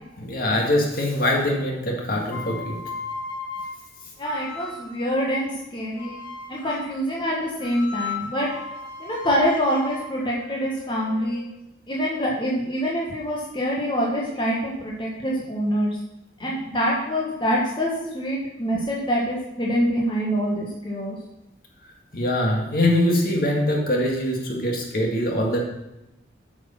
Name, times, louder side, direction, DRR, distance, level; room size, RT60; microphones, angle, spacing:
voice 1, 0.2-2.8 22.1-25.6, left 1 dB, 50° left, 0 dB, 1.9 m, -23 dB
sound 1, 2.2-5.1 6.0-7.0 7.6-11.6, left 4 dB, 70° left, 1.4 m, -36 dB
voice 2, 4.2-6.2 6.5-8.5 9.0-11.5 11.9-16.0 16.4-21.2, equal, 25° left, -4 dB, 1.5 m, -25 dB
8.8 x 6.6 x 5.7 m, 0.90 s
head